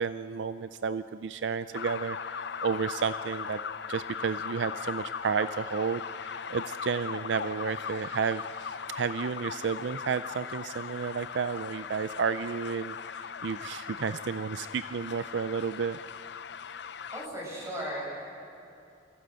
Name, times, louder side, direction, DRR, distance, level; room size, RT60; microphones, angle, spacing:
voice 1, 0.0-3.6 3.9-16.0, right 5 dB, 70° right, 13 dB, 0.4 m, -32 dB
sound 1, 1.7-17.3, left 6 dB, 65° left, 0.5 m, -39 dB
voice 2, 17.1-18.0, equal, 15° right, -4 dB, 6.7 m, -36 dB
23.5 x 15.5 x 7.8 m, 2.6 s
head